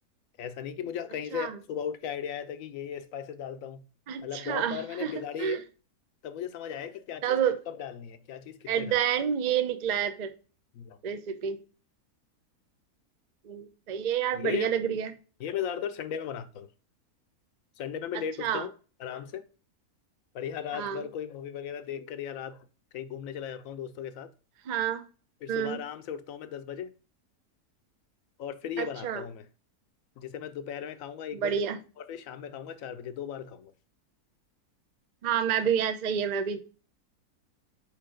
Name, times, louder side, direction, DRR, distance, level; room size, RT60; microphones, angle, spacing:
voice 1, 0.4-3.8 4.2-5.6 6.2-7.4 7.7-9.0 10.7-11.0 14.3-14.7 15.4-16.7 17.8-18.7 19.0-19.5 20.3-22.6 22.9-24.3 25.4-26.9 28.4-29.5 30.2-31.6 32.0-33.7, left 8 dB, 70° left, 0.9 m, -37 dB
voice 2, 4.1-5.1 5.4-5.6 7.2-7.5 8.7-10.3 11.0-11.6 13.5-15.1 18.4-18.7 20.7-21.0 24.7-25.0 25.5-25.8 28.8-29.2 31.3-31.8 35.2-36.6, right 8 dB, 75° right, 0.4 m, -29 dB
4.9 x 4.4 x 4.9 m
omnidirectional pair, 1.6 m